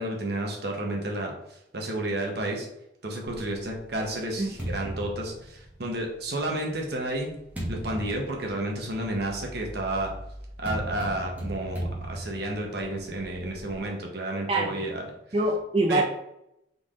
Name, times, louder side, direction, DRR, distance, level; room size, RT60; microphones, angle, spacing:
voice 1, 0.0-2.7 3.0-7.3 7.7-10.1 10.6-15.1 15.9-16.0, right 1 dB, 55° right, 1 dB, 1.0 m, -31 dB
sound 1, 3.3-6.1 6.8-13.8, right 1 dB, 10° right, 0.9 m, -38 dB
voice 2, 14.5-14.8 15.3-16.0, right 2 dB, 30° right, -3 dB, 0.4 m, -24 dB
3.9 x 3.4 x 3.7 m, 0.81 s
head